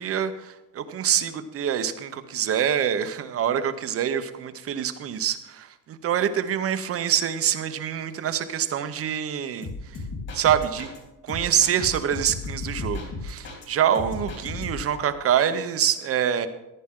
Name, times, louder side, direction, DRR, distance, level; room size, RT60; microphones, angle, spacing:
voice 1, 0.0-9.7 10.3-10.9 11.2-16.5, right 9 dB, 35° right, 10 dB, 0.8 m, -25 dB
sound 1, 9.6-11.0 11.3-13.7 13.9-15.0, left 3 dB, 40° left, 3.6 m, -35 dB
15.0 x 10.0 x 3.7 m, 0.99 s
cardioid pair, 140°, 39 cm